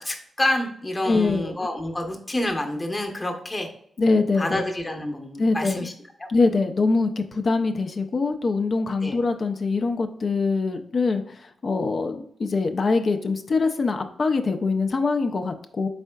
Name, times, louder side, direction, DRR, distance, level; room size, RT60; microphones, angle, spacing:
voice 1, 0.0-3.7 4.4-5.9 9.0-9.2, left 1 dB, 25° left, 3 dB, 0.9 m, -28 dB
voice 2, 1.0-1.5 4.0-4.6 5.4-5.9 6.3-15.9, left 3 dB, 50° left, 6 dB, 0.4 m, -23 dB
4.2 x 3.5 x 2.2 m, 0.67 s
cardioid pair, 65°, 0 cm